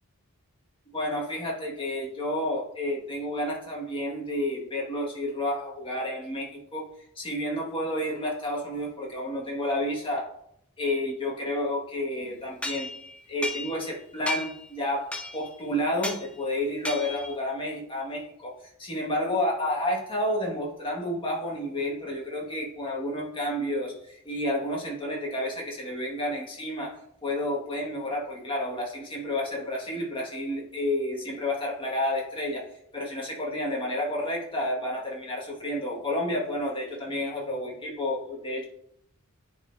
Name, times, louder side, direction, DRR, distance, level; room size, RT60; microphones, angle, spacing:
voice 1, 0.9-6.8 7.1-10.3 10.8-12.9 13.3-18.5 18.8-26.9 27.2-32.7 32.9-38.6, left 1 dB, 25° left, -3 dB, 1.7 m, -30 dB
sound 1, 12.6-13.9 14.3-14.7 15.1-15.5 16.0-16.3 16.8-17.4, left 1 dB, 5° left, 0.6 m, -34 dB
10.0 x 4.2 x 2.6 m, 0.72 s
head